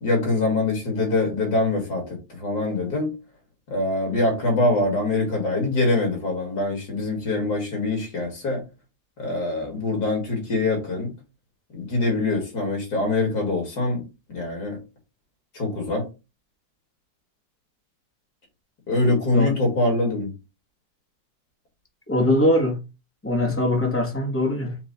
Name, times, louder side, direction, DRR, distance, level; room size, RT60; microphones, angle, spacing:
voice 1, 0.0-3.1 3.7-8.6 9.2-11.1 11.7-14.0 14.3-14.8 15.5-16.0 18.9-20.3, left 2 dB, 65° left, 2.3 m, -24 dB
voice 2, 22.1-22.8 23.2-24.8, left 1 dB, 15° left, 0.5 m, -22 dB
6.0 x 2.2 x 3.9 m
omnidirectional pair, 1.9 m